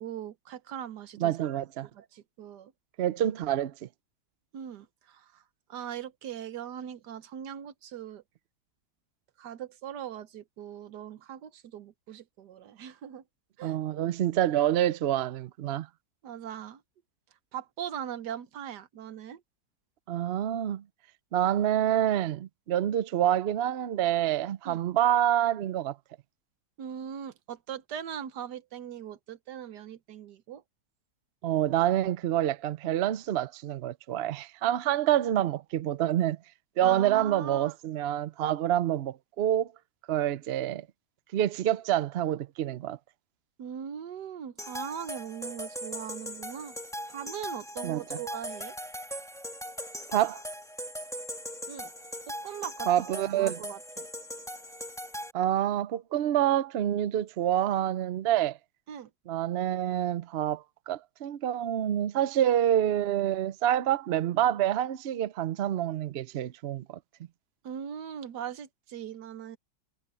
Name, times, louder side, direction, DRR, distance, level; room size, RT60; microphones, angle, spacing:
voice 1, 0.0-1.6 1.9-2.7 4.5-5.4 5.7-8.2 9.4-13.2 13.6-13.8 16.2-16.8 17.5-19.4 24.6-24.8 26.8-30.6 36.8-37.7 43.6-46.7 47.1-48.7 51.7-51.9 52.3-52.9 53.3-54.1 58.9-59.1 67.6-69.6, right 9 dB, 80° right, 1.6 m, -40 dB
voice 2, 1.2-1.9 3.0-3.9 13.6-15.9 20.1-20.8 21.3-26.0 31.4-36.4 36.8-39.7 40.1-40.9 41.3-43.0 47.8-48.2 50.1-50.4 52.9-53.6 55.3-58.6 59.3-67.0, right 11 dB, 65° right, 0.6 m, -27 dB
sound 1, 44.6-55.3, equal, ahead, 2.3 m, -39 dB
omnidirectional pair, 1.8 m